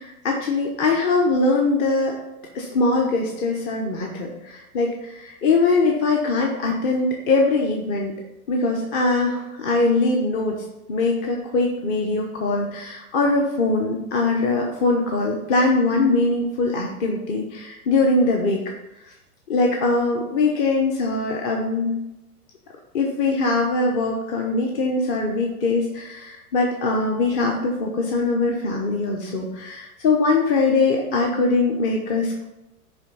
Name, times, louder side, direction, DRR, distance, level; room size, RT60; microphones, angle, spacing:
voice 1, 0.0-2.2 2.5-8.1 8.5-10.6 10.9-18.6 19.5-22.0 22.9-32.4, left 3 dB, 35° left, 0 dB, 1.1 m, -22 dB
10.5 x 3.5 x 5.6 m, 0.92 s
hypercardioid pair, 115°, 45 cm